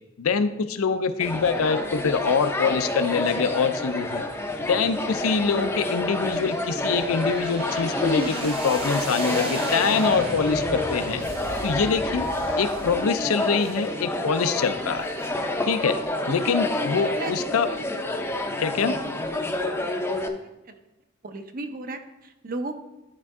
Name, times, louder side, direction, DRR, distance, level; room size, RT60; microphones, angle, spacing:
voice 1, 0.2-4.2 4.7-11.2 11.6-12.3 12.6-15.1 15.7-16.0 16.3-17.7 18.6-19.0, left 5 dB, 80° left, 11 dB, 0.5 m, -24 dB
sound 1, 1.2-20.3, left 1 dB, 10° left, 0.5 m, -28 dB
sound 2, 1.2-13.0, right 2 dB, 25° right, 1.0 m, -39 dB
sound 3, 7.5-15.3, right 2 dB, 65° right, 1.4 m, -47 dB
voice 2, 18.9-19.2 20.4-20.8 21.2-22.7, right 2 dB, 45° right, 7 dB, 0.7 m, -36 dB
11.0 x 4.5 x 3.6 m, 0.97 s
head